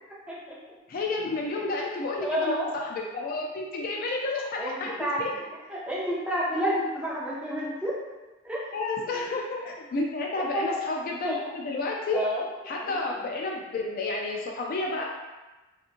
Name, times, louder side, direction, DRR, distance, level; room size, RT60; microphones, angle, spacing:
voice 1, 0.9-4.9 5.2-5.3 8.7-12.2 12.7-15.0, left 3 dB, 45° left, -1 dB, 0.3 m, -31 dB
voice 2, 2.2-2.7 4.6-5.4 5.7-7.9 8.4-8.6 9.1-9.3 10.4-10.8 11.2-11.4 12.1-12.5 12.8-13.2, equal, 5° right, -7 dB, 0.6 m, -30 dB
2.9 x 2.3 x 2.5 m, 1.1 s
head